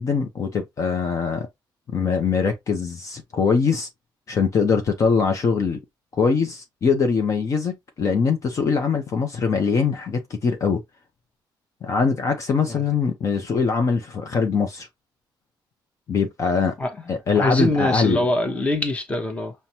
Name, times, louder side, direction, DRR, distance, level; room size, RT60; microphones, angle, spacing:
voice 1, 0.0-1.5 1.9-3.9 4.3-5.8 6.1-10.8 11.8-14.9 16.1-16.7 17.1-18.3, left 5 dB, 40° left, 0.7 m, -22 dB
voice 2, 17.3-19.5, left 1 dB, 15° left, 0.9 m, -23 dB
5.7 x 2.2 x 2.8 m
cardioid pair, 140°, 8 cm